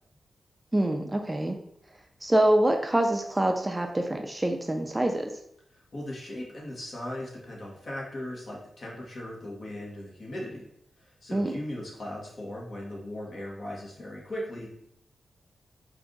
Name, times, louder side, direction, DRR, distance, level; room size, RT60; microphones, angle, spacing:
voice 1, 0.7-1.6 2.2-5.3 11.3-11.5, right 1 dB, 15° right, 4 dB, 0.4 m, -25 dB
voice 2, 5.9-10.7 11.0-14.7, left 1 dB, 50° left, -3 dB, 1.5 m, -38 dB
4.7 x 2.6 x 3.8 m, 0.75 s
wide cardioid pair, 110°, 0 cm